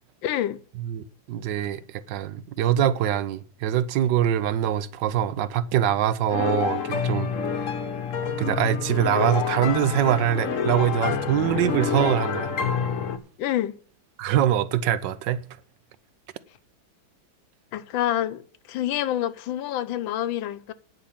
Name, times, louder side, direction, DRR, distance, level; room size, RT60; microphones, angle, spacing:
voice 1, 0.2-0.6 13.4-13.7 17.7-18.4 18.7-20.7, left 12 dB, 80° left, 1.5 m, -27 dB
voice 2, 0.8-7.3 7.5-7.7 8.4-12.5 14.2-15.4, right 10 dB, 70° right, 1.3 m, -24 dB
sound 1, 6.3-13.2, left 6 dB, 50° left, 1.1 m, -27 dB
9.6 x 5.9 x 8.5 m
omnidirectional pair, 2.1 m